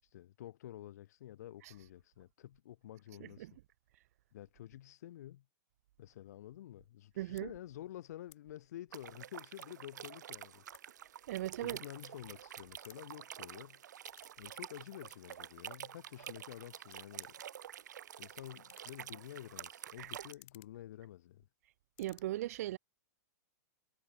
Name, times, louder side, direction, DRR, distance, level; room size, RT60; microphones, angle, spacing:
voice 1, 0.0-3.6 4.3-5.4 6.0-10.6 11.6-13.8 14.4-17.4 18.2-21.5, left 13 dB, 65° left, 3.7 m, -50 dB
voice 2, 3.2-3.5 7.2-7.5 11.3-11.8 20.0-20.1 22.0-22.8, right 15 dB, 60° right, 1.7 m, -38 dB
sound 1, 6.8-7.0 7.3-7.5 8.2-8.4 8.8-9.9 10.3-12.4 12.7-14.4 14.7-15.9 16.6-16.7 16.9-21.6 21.8-22.2, left 22 dB, 45° left, 7.9 m, -63 dB
sound 2, 8.9-20.3, right 10 dB, 85° right, 4.4 m, -49 dB
supercardioid pair, 155°, 9 cm